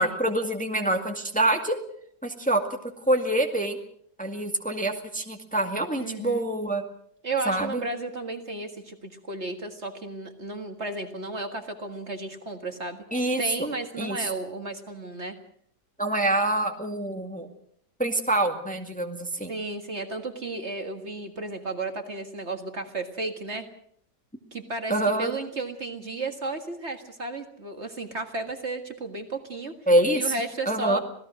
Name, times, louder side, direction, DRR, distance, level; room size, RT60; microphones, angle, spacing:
voice 1, 0.0-1.8 2.2-2.6 3.1-3.8 4.2-6.8 7.5-7.8 13.1-13.4 14.0-14.3 16.0-17.5 18.0-19.5 24.9-25.3 29.9-30.3 30.7-31.0, right 1 dB, 5° left, 4 dB, 1.9 m, -25 dB
voice 2, 6.0-6.5 7.2-13.0 13.4-15.4 19.5-23.7 24.5-29.7 30.1-31.0, right 3 dB, 40° right, 6 dB, 2.0 m, -33 dB
26.5 x 18.0 x 6.2 m, 0.64 s
omnidirectional pair, 1.8 m